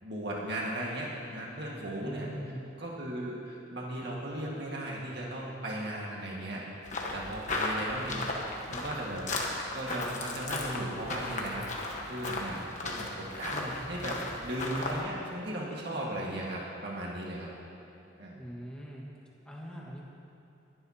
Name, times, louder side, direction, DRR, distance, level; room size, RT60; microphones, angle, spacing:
voice 1, 0.0-2.3 2.8-6.6 7.1-8.2 8.7-9.3 9.7-11.7 12.0-17.5 18.2-18.4, right 1 dB, 60° right, -3 dB, 1.8 m, -36 dB
voice 2, 2.0-2.6 18.4-19.0 19.4-20.0, equal, 5° left, -4 dB, 1.6 m, -41 dB
sound 1, 6.9-15.0, left 2 dB, 40° left, 1.3 m, -36 dB
20.5 x 11.0 x 2.9 m, 3.0 s
head